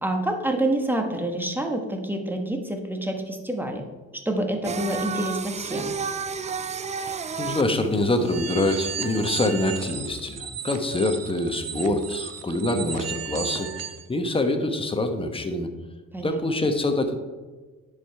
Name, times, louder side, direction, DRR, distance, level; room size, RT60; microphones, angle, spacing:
voice 1, 0.0-3.8 4.1-5.9 16.1-16.4, right 1 dB, 5° right, 4 dB, 1.3 m, -27 dB
Singing, 4.6-9.6, right 6 dB, 25° right, 0.4 m, -32 dB
voice 2, 7.0-15.7 16.2-17.2, left 2 dB, 20° left, 6 dB, 1.1 m, -25 dB
sound 1, 8.2-14.0, right 8 dB, 55° right, 0.9 m, -34 dB
9.9 x 5.1 x 4.7 m, 1.3 s
cardioid pair, 90°, 30 cm